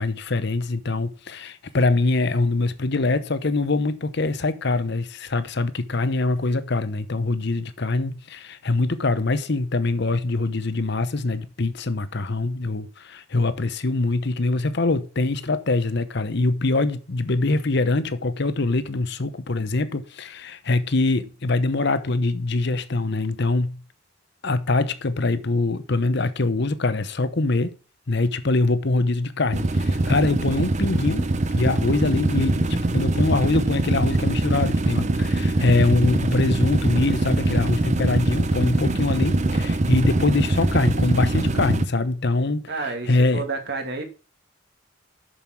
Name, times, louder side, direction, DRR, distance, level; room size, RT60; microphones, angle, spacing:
voice 1, 0.0-23.8 24.4-27.8 28.1-31.3 31.5-42.7 43.1-43.4, left 2 dB, 55° left, 0.9 m, -23 dB
sound 1, 29.5-41.8, right 2 dB, 35° right, 0.7 m, -23 dB
voice 2, 42.7-44.0, right 4 dB, 55° right, 2.1 m, -30 dB
7.0 x 6.7 x 6.0 m
head